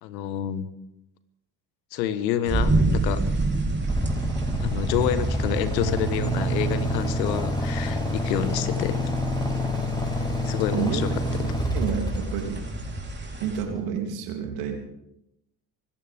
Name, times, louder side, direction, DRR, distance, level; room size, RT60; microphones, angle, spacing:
voice 1, 0.0-0.7 1.9-3.2 4.6-9.1 10.1-11.0, left 10 dB, 85° left, 12 dB, 1.3 m, -28 dB
sound 1, 2.5-13.6, right 2 dB, 20° right, 3.5 m, -30 dB
Motorcycle / Idling, 3.8-13.8, equal, 10° left, 5.0 m, -27 dB
voice 2, 10.7-11.0 11.3-12.7 13.4-14.8, right 7 dB, 80° right, 3 dB, 3.2 m, -30 dB
24.5 x 14.5 x 3.5 m, 0.85 s
hypercardioid pair, 65°, 49 cm